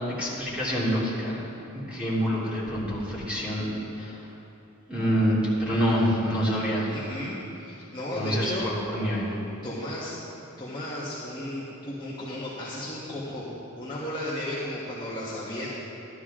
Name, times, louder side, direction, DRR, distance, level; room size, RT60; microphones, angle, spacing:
voice 1, 0.2-1.4 1.9-3.7 4.0-4.2 4.9-7.0 8.1-9.3, equal, 5° right, -9 dB, 3.0 m, -26 dB
voice 2, 6.9-8.7 9.6-10.1 10.6-13.5 13.8-15.7, left 1 dB, 20° left, -9 dB, 1.5 m, -34 dB
13.0 x 12.0 x 3.8 m, 2.9 s
head